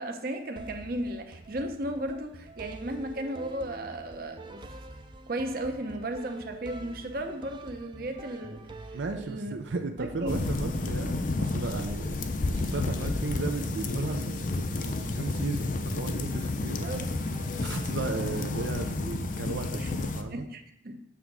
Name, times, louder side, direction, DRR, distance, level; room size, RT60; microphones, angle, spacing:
voice 1, 0.0-4.6 5.3-9.5 10.0-10.3 16.8-17.1 19.8-19.9 20.3-21.0, right 1 dB, 55° right, 5 dB, 0.8 m, -35 dB
sound 1, 0.6-18.4, right 2 dB, 25° right, 0.5 m, -47 dB
voice 2, 8.9-16.9 17.6-20.5, right 4 dB, 85° right, 5 dB, 0.5 m, -35 dB
sound 2, 10.3-20.2, left 2 dB, 45° left, 0.5 m, -31 dB
7.1 x 3.5 x 6.1 m, 0.75 s
head